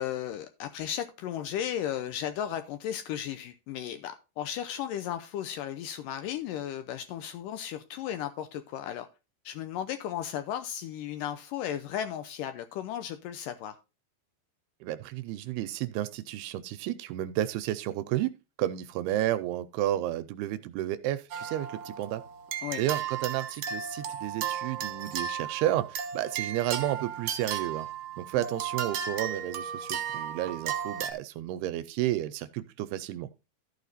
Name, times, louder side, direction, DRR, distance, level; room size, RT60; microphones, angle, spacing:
voice 1, 0.0-9.1 9.5-13.8 22.6-22.8 28.4-28.5, left 10 dB, 85° left, 1.9 m, -35 dB
voice 2, 14.8-18.3 18.6-22.2 22.8-27.9 28.2-33.3, right 13 dB, 80° right, 2.5 m, -31 dB
sound 1, 21.3-31.1, right 8 dB, 60° right, 2.2 m, -35 dB
14.0 x 5.0 x 4.0 m
omnidirectional pair, 4.7 m